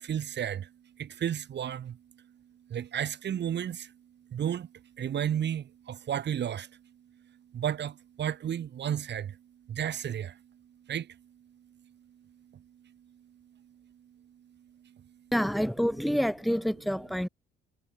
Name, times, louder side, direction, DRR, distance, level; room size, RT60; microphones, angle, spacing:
voice 1, 0.1-0.6 1.0-1.9 2.7-3.8 4.3-4.7 5.0-6.7 7.5-7.9 8.2-9.3 9.7-10.3 10.9-11.0, right 9 dB, 55° right, 5.5 m, -32 dB
voice 2, 15.3-17.3, equal, ahead, 3.7 m, -27 dB
supercardioid pair, 75°, 21 cm